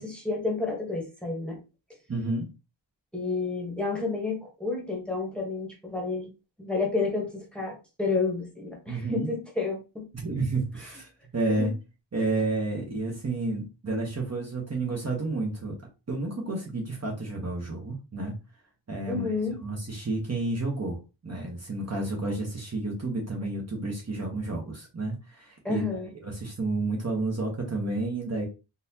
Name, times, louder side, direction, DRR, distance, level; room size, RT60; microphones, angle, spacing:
voice 1, 0.0-1.6 3.1-6.3 6.6-10.1 11.6-11.7 19.1-19.6 25.6-26.1, left 3 dB, ahead, 0 dB, 1.1 m, -30 dB
voice 2, 2.1-2.5 8.9-9.3 10.1-11.8 12.1-15.7 16.1-18.4 18.9-19.3 19.6-25.8 26.1-28.5, right 2 dB, 35° right, -1 dB, 1.0 m, -30 dB
4.0 x 2.5 x 2.7 m, 0.29 s
wide cardioid pair, 115°, 47 cm